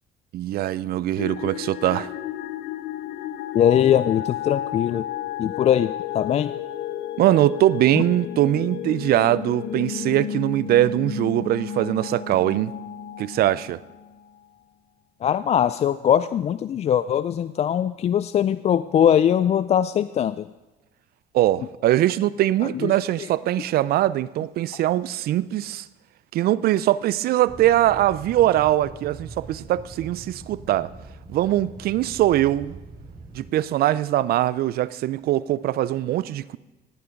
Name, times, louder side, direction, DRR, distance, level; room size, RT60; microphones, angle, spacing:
voice 1, 0.3-2.1 7.2-12.7 13.2-13.8 21.3-25.8 26.3-30.9 31.3-32.8 33.3-36.6, right 14 dB, 65° right, 0.5 m, -22 dB
sound 1, 1.2-14.3, left 9 dB, 75° left, 0.9 m, -32 dB
voice 2, 3.5-5.0 5.4-6.5 15.2-20.5 22.7-22.9 24.7-24.8, left 9 dB, 40° left, 0.3 m, -21 dB
sound 2, 27.5-33.5, right 3 dB, 25° right, 2.7 m, -42 dB
17.0 x 9.4 x 5.2 m
cardioid pair, 110°, 17 cm